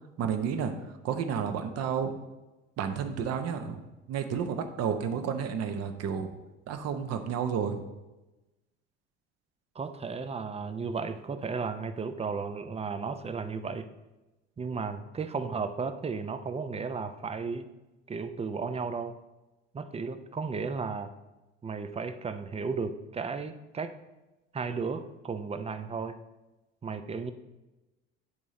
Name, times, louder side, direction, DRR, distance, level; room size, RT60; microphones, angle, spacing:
voice 1, 0.2-2.2 2.8-3.8 4.1-6.3 6.7-7.8, right 7 dB, 45° right, 7 dB, 0.8 m, -31 dB
voice 2, 9.8-13.9 14.6-17.7 18.1-19.2 19.7-21.1 21.6-24.0 24.5-26.2 26.8-27.3, right 5 dB, 20° right, 11 dB, 0.5 m, -34 dB
9.6 x 3.6 x 4.1 m, 1.1 s
hypercardioid pair, 65°, 34 cm